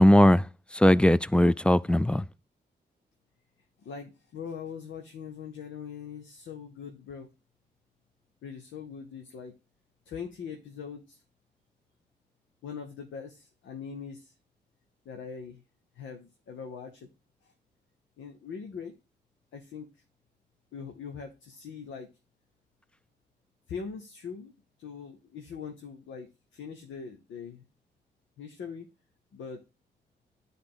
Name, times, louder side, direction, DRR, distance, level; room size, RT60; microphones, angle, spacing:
voice 1, 0.0-2.3, left 1 dB, 5° left, 0.4 m, -20 dB
voice 2, 3.8-7.3 8.4-9.5 10.1-11.2 12.6-14.3 15.0-15.6 15.9-17.1 17.4-17.5 18.2-19.0 19.5-19.9 20.7-22.1 23.7-27.7 28.4-28.9 29.3-29.6, left 6 dB, 90° left, 0.9 m, -41 dB
9.6 x 3.6 x 3.9 m
supercardioid pair, 45°, 19 cm